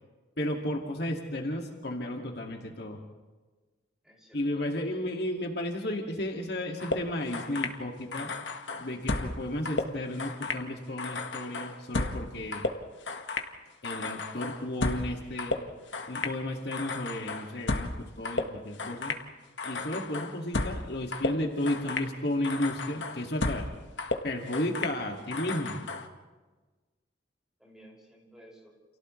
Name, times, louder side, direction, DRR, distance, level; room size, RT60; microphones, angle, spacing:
voice 1, 0.4-3.0 4.3-8.3 8.8-12.7 13.8-15.6 16.1-19.2 19.7-23.7 24.2-25.9, left 1 dB, 60° left, 2 dB, 2.1 m, -33 dB
voice 2, 4.0-5.0 27.6-28.7, equal, 5° right, -3 dB, 5.9 m, -54 dB
sound 1, 6.8-7.8 8.1-9.4 9.6-10.7 11.0-13.5 13.8-15.1 15.4-16.4 16.7-18.0 18.2-19.3 19.6-20.8 21.1-22.1 22.4-23.7 24.0-25.0 25.3-26.1, left 3 dB, 80° left, 1.5 m, -33 dB
30.0 x 28.5 x 3.2 m, 1.3 s
head